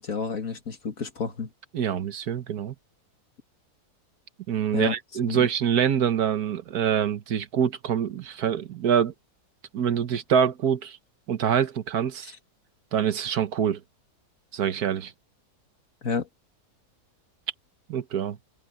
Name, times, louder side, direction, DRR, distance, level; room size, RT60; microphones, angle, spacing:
voice 1, 0.0-1.5 4.7-4.9 5.3-5.4 12.2-12.3 16.0-16.3, left 5 dB, 60° left, 2.3 m, -30 dB
voice 2, 1.7-2.7 4.5-9.1 9.7-11.0 11.3-12.3 12.9-13.8 14.5-15.1 17.9-18.4, right 8 dB, 70° right, 1.6 m, -25 dB
omnidirectional pair, 1.7 m